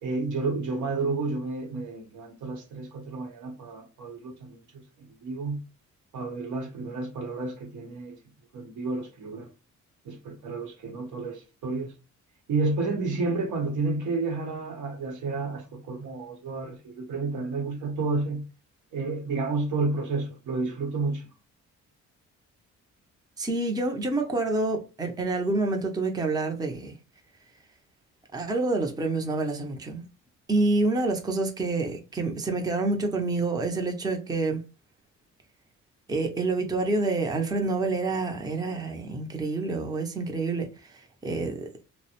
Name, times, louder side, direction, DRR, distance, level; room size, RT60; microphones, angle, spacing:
voice 1, 0.0-4.6 5.0-5.6 6.1-8.2 8.5-9.5 10.0-11.9 12.5-18.5 18.9-21.3, right 3 dB, 75° right, 0.9 m, -31 dB
voice 2, 23.4-27.0 28.3-30.0 30.5-34.6 36.1-41.7, right 3 dB, 15° right, 0.5 m, -27 dB
2.4 x 2.0 x 2.8 m
cardioid pair, 90°, 30 cm